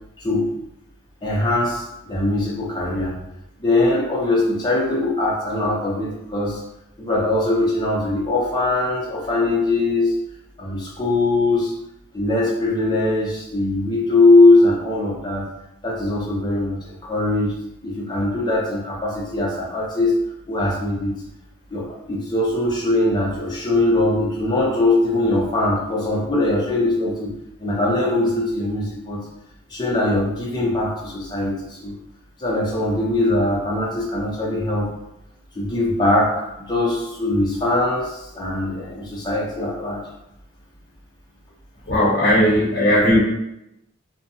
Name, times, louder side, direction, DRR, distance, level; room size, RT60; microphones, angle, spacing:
voice 1, 1.2-3.1 3.6-6.6 7.0-10.1 10.6-11.7 12.1-15.4 15.8-17.5 17.8-20.1 20.5-21.1 21.7-27.3 27.6-29.2 29.7-31.9 32.4-34.9 35.6-40.0, left 2 dB, 20° left, -4 dB, 0.5 m, -21 dB
voice 2, 41.9-43.2, equal, 45° left, -9 dB, 0.9 m, -17 dB
2.6 x 2.2 x 2.7 m, 0.86 s
head